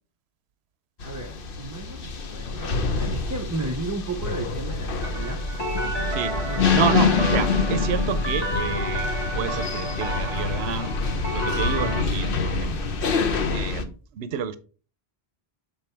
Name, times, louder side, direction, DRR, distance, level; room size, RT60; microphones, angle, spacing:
sound 1, 1.0-13.8, left 4 dB, 60° left, 1.0 m, -26 dB
voice 1, 1.0-5.4 6.5-7.0, right 3 dB, 20° right, 3 dB, 0.6 m, -34 dB
sound 2, 5.0-12.0, right 1 dB, 25° left, 1.5 m, -31 dB
voice 2, 6.7-9.1 9.3-10.9 11.3-12.8 13.5-14.6, right 9 dB, 85° right, 13 dB, 0.9 m, -29 dB
7.0 x 3.9 x 4.4 m, 0.37 s
omnidirectional pair, 1.0 m